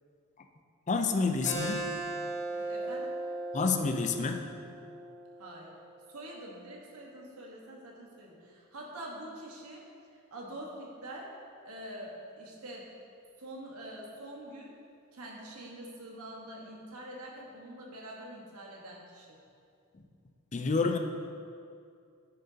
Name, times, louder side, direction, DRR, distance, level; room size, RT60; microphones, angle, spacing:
voice 1, 0.9-1.8 3.5-4.4 20.5-21.0, left 4 dB, 35° left, 5 dB, 0.5 m, -28 dB
Keyboard (musical), 1.4-6.6, right 2 dB, 15° left, 1.6 m, -38 dB
voice 2, 2.5-3.1 5.4-5.7 6.1-9.8 10.1-11.3 11.6-12.9 13.4-14.7 15.1-19.4, right 1 dB, 90° right, -2 dB, 1.4 m, -45 dB
10.5 x 6.6 x 2.8 m, 2.3 s
head